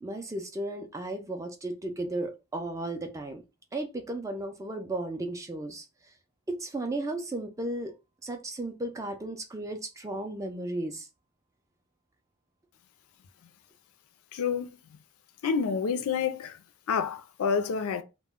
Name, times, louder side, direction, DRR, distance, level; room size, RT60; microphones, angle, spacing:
voice 1, 0.0-3.4 3.7-5.9 6.5-7.9 8.2-11.1, right 2 dB, 15° right, 0.3 m, -34 dB
voice 2, 14.3-14.8 15.4-16.6 16.9-18.0, left 6 dB, 75° left, 0.4 m, -28 dB
2.1 x 2.0 x 3.6 m
head